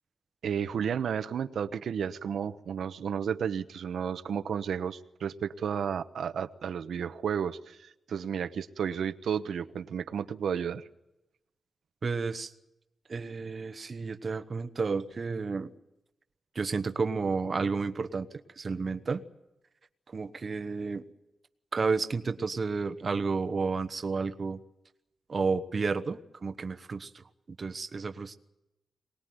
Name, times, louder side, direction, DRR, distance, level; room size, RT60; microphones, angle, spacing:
voice 1, 0.4-10.8, right 7 dB, 90° right, 11 dB, 0.9 m, -32 dB
voice 2, 12.0-12.5 13.1-15.7 16.5-18.3 18.6-19.2 20.1-21.0 21.7-24.6 25.3-27.2 27.6-28.4, right 4 dB, 35° right, 9 dB, 1.0 m, -31 dB
23.5 x 20.0 x 9.5 m, 0.91 s
wide cardioid pair, 175°, 0 cm